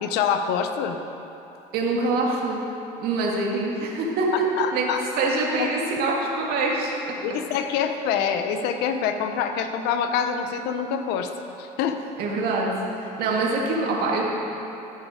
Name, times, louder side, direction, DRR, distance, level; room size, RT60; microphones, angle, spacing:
voice 1, 0.0-1.0 4.6-5.0 5.6-5.7 7.2-11.3 11.6-12.0, left 7 dB, 80° left, 7 dB, 0.8 m, -25 dB
voice 2, 1.7-2.6 3.0-4.5 4.7-4.9 5.2-6.9 12.2-14.2, right 3 dB, 65° right, -2 dB, 2.0 m, -24 dB
13.5 x 6.6 x 5.1 m, 2.9 s
cardioid pair, 125°, 17 cm